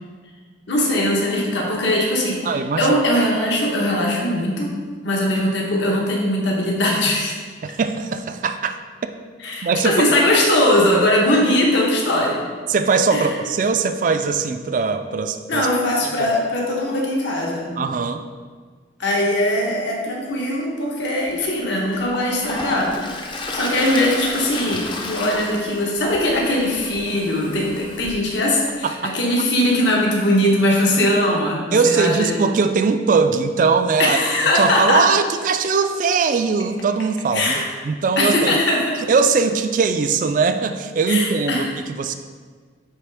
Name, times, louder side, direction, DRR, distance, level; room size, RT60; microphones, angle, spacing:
voice 1, 0.7-4.7 5.0-7.3 9.4-12.4 13.1-13.3 15.5-17.7 19.0-22.9 23.5-32.4 34.0-35.1 37.3-37.7 38.2-39.0 41.1-41.7, left 1 dB, 70° left, -2 dB, 1.1 m, -20 dB
voice 2, 2.4-2.9 7.6-8.8 9.6-10.0 12.7-15.7 16.2-16.3 17.8-18.2 28.8-29.1 31.7-34.2 34.5-38.6 39.1-42.1, right 4 dB, 45° right, 9 dB, 0.3 m, -20 dB
Toilet flush, 21.3-21.4 21.9-28.1, left 2 dB, 25° left, 0.5 m, -31 dB
9.2 x 3.3 x 3.5 m, 1.5 s
head